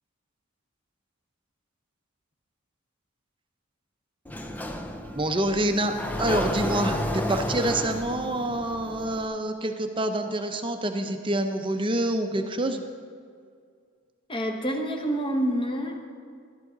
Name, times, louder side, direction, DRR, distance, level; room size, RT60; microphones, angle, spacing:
Sliding door, 4.3-9.3, left 1 dB, 10° left, 0.5 m, -32 dB
voice 1, 5.1-12.8, right 1 dB, 25° right, 6 dB, 0.7 m, -27 dB
voice 2, 14.3-16.2, equal, 25° left, 2 dB, 1.1 m, -28 dB
13.5 x 12.0 x 3.9 m, 2.2 s
head